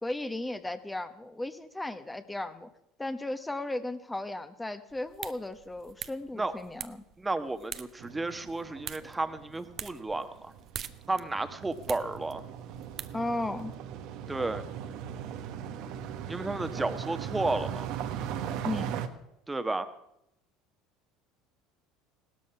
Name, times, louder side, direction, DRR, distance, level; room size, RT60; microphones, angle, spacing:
voice 1, 0.0-2.7 3.0-7.0 13.1-13.7 18.6-19.0, left 2 dB, 10° left, 9 dB, 1.2 m, -35 dB
sound 1, 4.9-13.7, right 9 dB, 45° right, 0.9 m, -46 dB
voice 2, 7.2-10.5 11.1-12.4 14.3-14.7 16.3-17.9 19.5-19.9, right 2 dB, 15° right, 10 dB, 1.4 m, -32 dB
sound 2, 8.0-19.1, right 9 dB, 65° right, 1.3 m, -39 dB
17.0 x 13.0 x 5.8 m, 0.82 s
hypercardioid pair, 80°, 0 cm